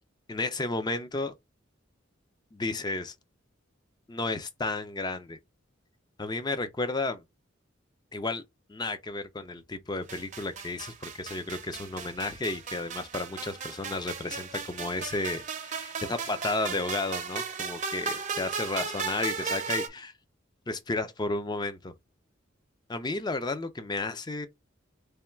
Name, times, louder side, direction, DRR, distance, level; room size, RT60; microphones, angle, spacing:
voice 1, 0.3-1.3 2.5-3.1 4.1-5.4 6.2-7.2 8.1-8.4 8.7-20.1 20.7-21.9 22.9-24.5, left 2 dB, 20° left, 0.5 m, -32 dB
sound 1, 10.1-19.9, right 5 dB, 40° right, 0.6 m, -36 dB
3.4 x 2.3 x 4.3 m
head